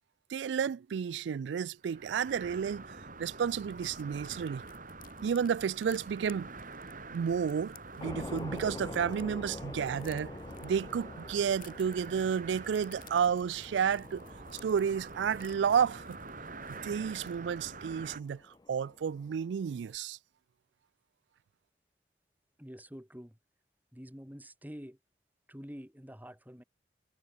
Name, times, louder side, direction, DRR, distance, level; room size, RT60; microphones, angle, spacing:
voice 1, 0.3-4.6 5.2-6.5 7.1-14.2 14.6-16.2 16.7-18.4 18.7-20.2, right 7 dB, 70° right, 0.3 m, -31 dB
sound 1, 1.8-18.2, right 3 dB, 50° right, 4.5 m, -47 dB
sound 2, 3.3-9.2 9.5-17.7 18.1-18.3 18.5-18.8, left 12 dB, 50° left, 7.8 m, -59 dB
sound 3, 8.0-20.0, left 2 dB, 20° left, 0.5 m, -47 dB
voice 2, 22.6-23.4 23.9-25.0 25.5-26.6, equal, 10° right, 5.6 m, -47 dB
head